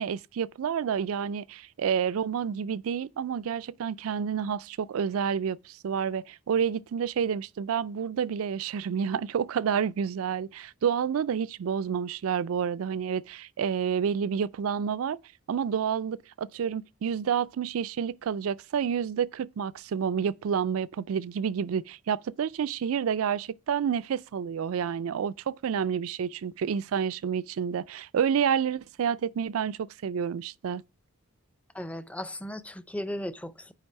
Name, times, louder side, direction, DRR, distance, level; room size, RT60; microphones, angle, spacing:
voice 1, 0.0-15.2 15.5-30.8, right 7 dB, 80° right, 0.4 m, -29 dB
voice 2, 31.7-33.7, left 1 dB, 5° left, 0.5 m, -36 dB
9.2 x 3.3 x 5.5 m
head